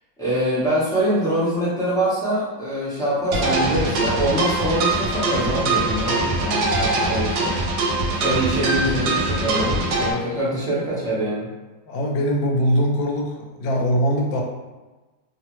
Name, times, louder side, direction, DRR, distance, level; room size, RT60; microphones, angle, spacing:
voice 1, 0.2-7.5 8.2-11.5, right 1 dB, 5° left, -11 dB, 0.4 m, -24 dB
sound 1, 3.3-10.1, right 2 dB, 85° right, 1.3 m, -22 dB
voice 2, 11.9-14.4, equal, 80° left, 0 dB, 1.3 m, -22 dB
3.1 x 2.0 x 3.0 m, 1.2 s
omnidirectional pair, 2.0 m